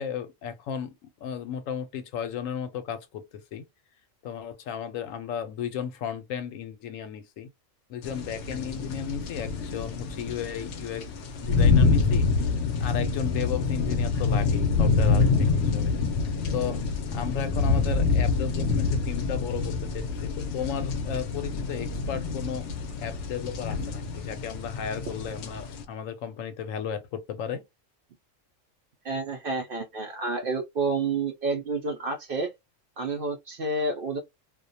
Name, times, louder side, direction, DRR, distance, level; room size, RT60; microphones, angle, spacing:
voice 1, 0.0-3.6 4.2-7.5 7.9-15.9 16.5-16.8 17.1-22.7 23.0-27.6, left 8 dB, 85° left, 1.0 m, -34 dB
sound 1, 8.0-25.8, left 4 dB, 65° left, 0.8 m, -26 dB
voice 2, 29.0-32.5 33.0-34.2, right 3 dB, 60° right, 0.6 m, -29 dB
2.3 x 2.2 x 2.6 m
omnidirectional pair, 1.3 m